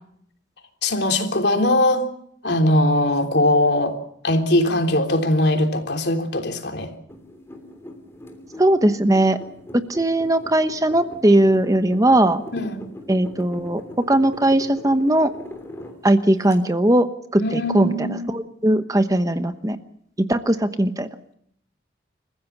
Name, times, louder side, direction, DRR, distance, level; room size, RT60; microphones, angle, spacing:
voice 1, 0.8-2.1 2.4-4.0 4.2-6.9 12.5-12.8 17.4-18.4, left 1 dB, 60° left, 5 dB, 3.4 m, -20 dB
sound 1, 7.1-16.6, left 1 dB, 15° left, 3.2 m, -40 dB
voice 2, 8.6-9.4 9.7-12.4 13.1-13.8 14.1-15.3 16.0-19.8 20.3-21.1, right 1 dB, 20° right, 9 dB, 1.0 m, -19 dB
29.0 x 15.5 x 7.2 m, 0.71 s
head